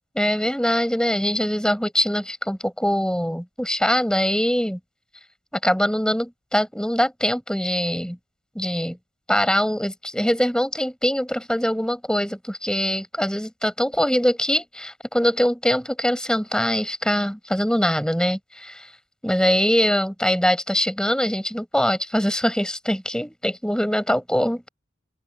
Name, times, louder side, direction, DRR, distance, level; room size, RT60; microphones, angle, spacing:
voice 1, 0.1-4.8 5.6-8.2 8.5-9.0 9.3-18.9 19.2-24.6, equal, 5° left, 7.3 m, -23 dB
open air
head